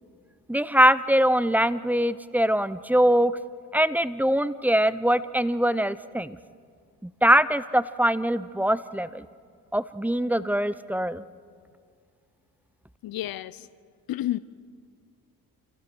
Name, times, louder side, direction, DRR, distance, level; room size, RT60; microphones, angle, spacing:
voice 1, 0.5-3.3 3.7-6.4 7.0-9.3 9.7-11.3, equal, 5° right, 16 dB, 0.7 m, -22 dB
voice 2, 13.0-13.7 14.1-14.4, left 14 dB, 70° left, 18 dB, 0.6 m, -30 dB
28.0 x 15.5 x 6.2 m, 2.1 s
cardioid pair, 70°, 38 cm